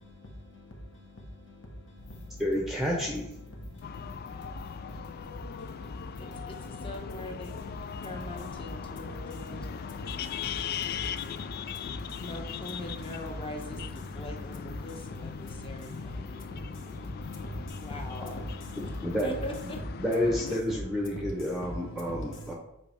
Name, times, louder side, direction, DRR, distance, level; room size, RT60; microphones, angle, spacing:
sound 1, 2.0-19.8, left 2 dB, 90° left, 1.0 m, -48 dB
voice 1, 2.4-3.3 19.0-19.3 20.0-22.5, equal, ahead, 0.9 m, -29 dB
sound 2, 3.8-20.6, left 7 dB, 45° left, 0.3 m, -40 dB
voice 2, 6.5-7.5 8.0-10.0 12.2-13.8 14.1-17.0 17.8-18.4 19.2-19.8, left 1 dB, 25° left, 1.1 m, -42 dB
voice 3, 17.2-19.8, left 1 dB, 60° left, 1.5 m, -39 dB
7.7 x 4.6 x 3.5 m
head